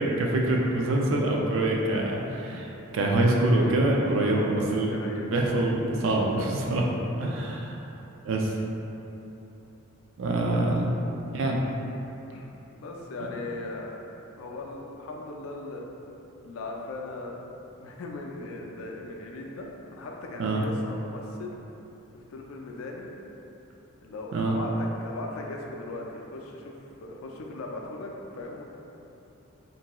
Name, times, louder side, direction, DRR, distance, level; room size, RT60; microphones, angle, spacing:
voice 1, 0.0-6.9 7.2-7.8 8.2-8.6 10.2-10.9 11.3-11.6 13.2-13.3 20.4-20.6 24.3-24.6, right 2 dB, 65° right, -1 dB, 0.3 m, -25 dB
voice 2, 4.1-5.3 12.3-15.9 16.4-17.4 17.8-21.6 22.1-23.1 24.0-26.7 27.0-28.6, left 2 dB, 75° left, 0 dB, 0.3 m, -38 dB
2.6 x 2.2 x 2.9 m, 2.9 s
head